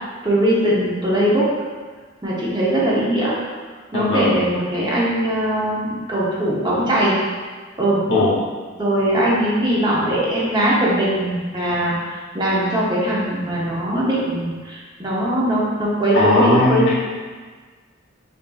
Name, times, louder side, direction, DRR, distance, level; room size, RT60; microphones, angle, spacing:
voice 1, 0.2-1.5 2.2-3.3 3.9-7.2 7.8-8.0 8.8-11.9 12.3-16.9, right 1 dB, 20° right, -6 dB, 0.7 m, -20 dB
voice 2, 3.9-4.4 8.1-8.4 11.7-11.9 16.1-16.9, left 1 dB, 60° left, -4 dB, 0.8 m, -18 dB
5.0 x 2.6 x 2.3 m, 1.5 s
head